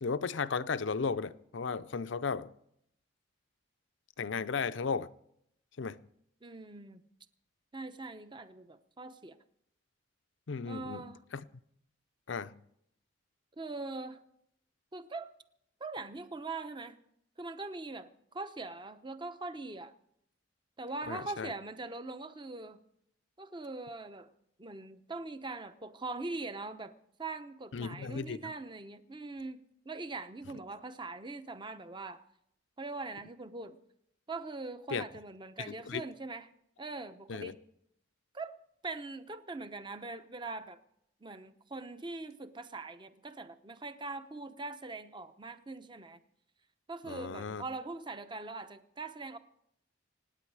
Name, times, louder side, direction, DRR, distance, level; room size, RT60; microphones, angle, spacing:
voice 1, 0.0-2.5 4.2-5.1 5.8-6.0 10.5-11.1 11.3-11.4 12.3-12.5 21.1-21.5 27.7-28.5 34.9-35.0 35.7-36.0 37.3-37.5 47.1-47.6, left 5 dB, 70° left, 0.6 m, -35 dB
voice 2, 6.4-7.0 7.7-9.4 10.7-11.2 13.6-14.2 14.9-15.3 15.8-17.0 17.4-19.9 20.8-22.8 23.4-24.3 24.6-26.9 27.2-32.2 32.8-33.8 34.3-36.5 36.8-37.6 38.3-38.6 38.8-40.8 41.2-46.2 46.9-49.4, right 3 dB, 25° right, 0.8 m, -42 dB
25.5 x 9.7 x 4.8 m
head